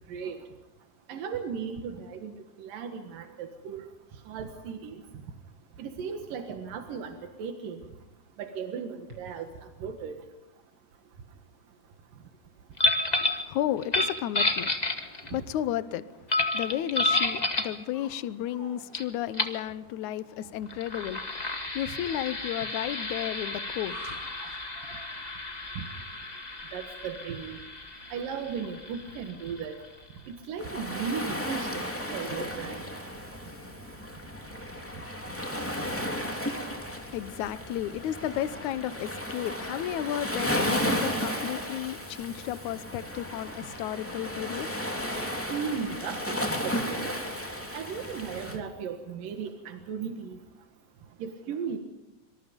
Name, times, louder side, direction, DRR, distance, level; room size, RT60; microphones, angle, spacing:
voice 1, 1.1-3.9 4.3-5.0 5.8-7.8 8.4-10.2 15.3-15.4 25.8-25.9 26.7-27.6 28.1-29.8 30.3-32.8 45.5-47.1 47.7-50.4 51.2-51.8, right 6 dB, 90° right, 3.3 m, -36 dB
sound 1, 8.0-9.6 10.3-10.4 11.1-11.2 11.8-12.1 12.5-12.6 12.8-13.0 13.5-13.6 16.6-16.9 17.5-18.1 18.4-18.9 20.3-20.6 21.7-22.2 23.7-25.3, equal, 35° right, 6.0 m, -50 dB
sound 2, 12.8-13.4 13.8-15.4 16.3-17.8 18.9-19.0 19.3-19.6 20.7-29.9, left 2 dB, 20° left, 1.1 m, -31 dB
voice 2, 13.2-24.3 37.1-45.1, left 12 dB, 70° left, 2.2 m, -33 dB
Waves surf, 30.6-48.6, equal, 5° left, 2.7 m, -34 dB
26.5 x 26.0 x 5.3 m
omnidirectional pair, 3.8 m